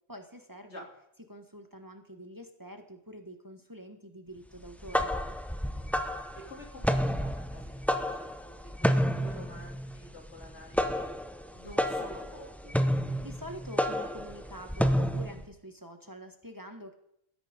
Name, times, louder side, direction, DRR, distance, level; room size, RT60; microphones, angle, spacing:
voice 1, 0.1-0.8 1.3-5.1 13.2-16.9, equal, 20° right, 5 dB, 1.5 m, -46 dB
sound 1, 4.6-15.4, equal, ahead, 0.7 m, -30 dB
voice 2, 6.3-11.1 11.5-12.8, left 1 dB, 80° left, 0 dB, 3.6 m, -49 dB
16.5 x 13.0 x 5.2 m, 0.76 s
omnidirectional pair, 1.1 m